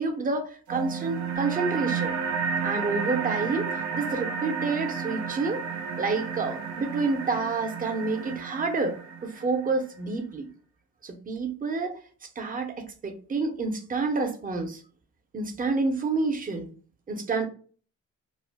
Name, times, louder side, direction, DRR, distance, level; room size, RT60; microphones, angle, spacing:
voice 1, 0.0-2.2 2.6-5.6 6.0-10.5 11.0-14.8 15.3-16.7 17.1-17.5, right 3 dB, 30° right, 0.7 m, -29 dB
sound 1, 0.7-9.7, right 6 dB, 80° right, 0.7 m, -32 dB
2.4 x 2.2 x 3.3 m
cardioid pair, 90°, 30 cm